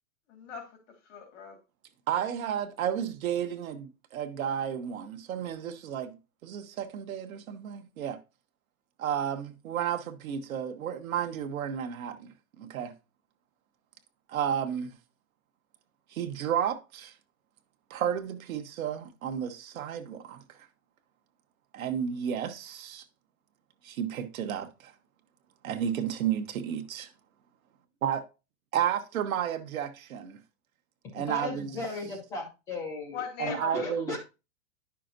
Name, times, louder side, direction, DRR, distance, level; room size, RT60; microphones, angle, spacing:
voice 1, 0.3-1.6 33.1-33.9, left 7 dB, 60° left, 2.0 m, -40 dB
voice 2, 2.1-8.2 9.0-12.9 14.3-14.9 16.1-17.1 17.9-20.4 21.7-23.0 23.8-24.9 25.6-27.0 28.0-28.2 28.7-30.4 31.1-31.8 33.4-34.2, right 9 dB, 80° right, 1.1 m, -32 dB
voice 3, 31.2-33.2 33.5-34.2, left 3 dB, 10° left, 0.3 m, -36 dB
10.0 x 5.7 x 2.6 m
supercardioid pair, 160°, 41 cm